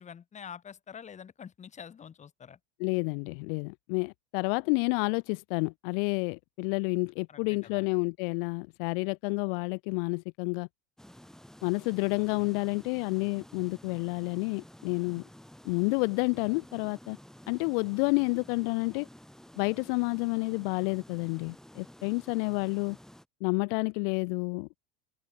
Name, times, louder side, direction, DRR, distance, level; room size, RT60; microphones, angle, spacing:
voice 1, 0.0-2.6 7.3-7.9, left 7 dB, 20° left, 5.7 m, -46 dB
voice 2, 2.8-10.7 11.6-15.2 15.6-17.2 17.5-19.1 19.6-23.0 23.4-24.7, left 34 dB, 55° left, 1.1 m, -30 dB
sound 1, 11.0-23.3, equal, ahead, 7.7 m, -52 dB
supercardioid pair, 145°, 32 cm